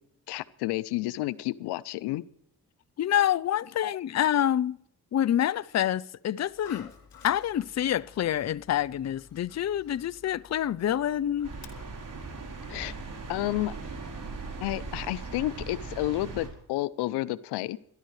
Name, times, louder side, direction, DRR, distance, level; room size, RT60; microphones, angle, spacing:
voice 1, 0.3-2.3 3.8-3.9 12.7-12.9 13.3-13.7 14.6-17.8, left 17 dB, 85° left, 0.6 m, -31 dB
voice 2, 3.0-4.8 5.1-6.9 7.2-11.5, left 11 dB, 45° left, 0.6 m, -27 dB
Dog, 6.4-12.8, left 6 dB, 60° left, 3.1 m, -53 dB
sound 1, 11.4-16.5, right 4 dB, 50° right, 4.2 m, -39 dB
26.5 x 11.5 x 3.2 m
supercardioid pair, 55°, 39 cm